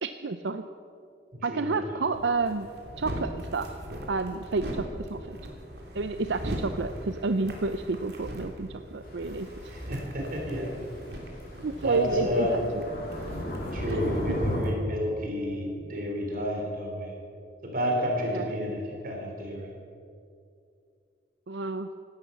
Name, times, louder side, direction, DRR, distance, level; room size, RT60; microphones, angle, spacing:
voice 1, 0.0-0.6 1.4-2.7 3.0-3.7 4.1-5.4 5.9-9.5 11.6-12.8 13.9-14.0 18.3-18.4 21.5-21.9, right 3 dB, 80° right, 9 dB, 0.6 m, -30 dB
voice 2, 1.3-2.0 9.7-10.7 11.8-12.6 13.7-17.1 17.6-19.7, left 1 dB, 50° right, 0 dB, 4.1 m, -31 dB
sound 1, 2.1-14.7, equal, 65° right, 3.1 m, -40 dB
sound 2, 9.0-14.6, left 1 dB, 50° left, 3.0 m, -36 dB
16.5 x 12.5 x 7.0 m, 2.4 s
head